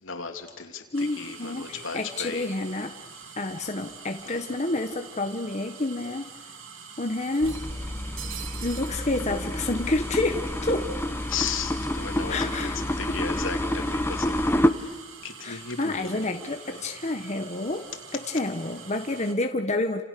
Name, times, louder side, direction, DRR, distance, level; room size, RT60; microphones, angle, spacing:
voice 1, 0.0-2.5 4.2-4.4 11.3-14.4 14.7-16.8, left 6 dB, 80° left, 4 dB, 3.3 m, -36 dB
voice 2, 0.9-2.9 3.4-6.3 7.0-7.6 8.6-10.9 12.3-12.8 15.4-17.8 18.1-20.0, left 2 dB, 35° left, 4 dB, 1.4 m, -29 dB
sound 1, 0.9-19.3, right 5 dB, 85° right, 3.2 m, -45 dB
sound 2, 7.3-9.0, right 13 dB, 65° right, 1.2 m, -42 dB
sound 3, 7.4-14.7, left 1 dB, 10° left, 1.2 m, -28 dB
30.0 x 28.5 x 6.9 m, 1.2 s
head